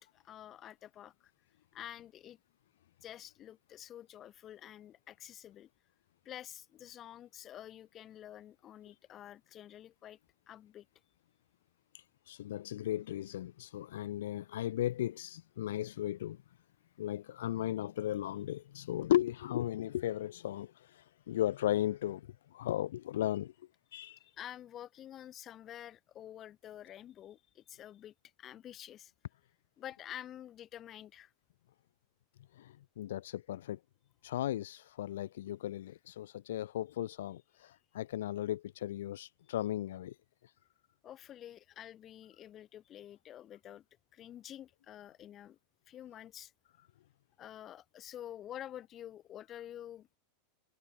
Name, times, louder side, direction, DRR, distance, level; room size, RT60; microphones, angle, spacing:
voice 1, 0.1-1.3 1.7-2.4 3.0-5.7 6.2-10.2 10.5-10.9 24.0-29.1 29.8-31.3 41.0-43.8 44.1-45.6 45.9-46.5 47.4-50.1, left 11 dB, 30° left, 3.8 m, -49 dB
voice 2, 11.9-16.4 17.0-23.5 23.9-24.2 32.5-33.8 34.2-40.1, left 13 dB, 80° left, 0.6 m, -36 dB
supercardioid pair, 145°, 0 cm